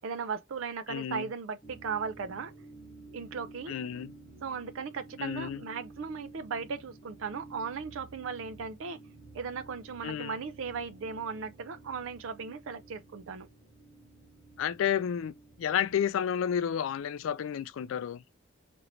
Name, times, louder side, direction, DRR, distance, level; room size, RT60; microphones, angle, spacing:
voice 1, 0.0-2.5 3.1-3.8 4.4-9.0 9.3-13.5, right 5 dB, 85° right, 0.4 m, -37 dB
voice 2, 0.9-1.3 3.7-4.1 5.2-5.6 10.0-10.4 14.6-15.3 15.6-18.2, left 9 dB, 90° left, 0.3 m, -31 dB
sound 1, 1.6-16.0, right 2 dB, 15° left, 0.9 m, -52 dB
2.9 x 2.6 x 3.1 m
head